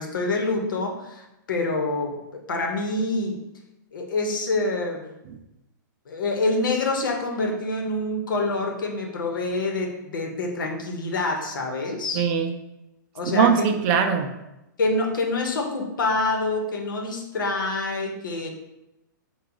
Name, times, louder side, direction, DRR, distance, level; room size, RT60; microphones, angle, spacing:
voice 1, 0.0-3.4 3.9-5.1 6.1-12.2 13.1-13.8 14.8-18.5, left 2 dB, 80° left, 2 dB, 1.0 m, -26 dB
voice 2, 12.1-12.5 13.3-14.4, right 7 dB, 40° right, 5 dB, 0.5 m, -21 dB
4.6 x 2.3 x 3.8 m, 0.91 s
hypercardioid pair, 140°, 11 cm